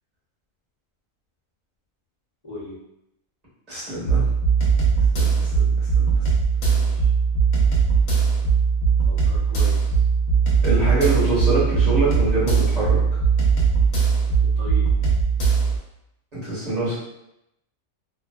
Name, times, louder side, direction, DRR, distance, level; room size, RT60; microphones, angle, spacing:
voice 1, 2.4-2.8 6.7-7.0 9.1-10.0 14.4-14.8, left 1 dB, 30° left, -12 dB, 0.7 m, -38 dB
voice 2, 3.7-4.2 5.1-5.7 6.0-6.2 10.6-13.0 16.3-17.0, right 2 dB, 30° right, -10 dB, 1.2 m, -24 dB
sound 1, 4.1-15.8, right 5 dB, 70° left, 1.1 m, -19 dB
2.7 x 2.2 x 2.2 m, 0.84 s
omnidirectional pair, 1.5 m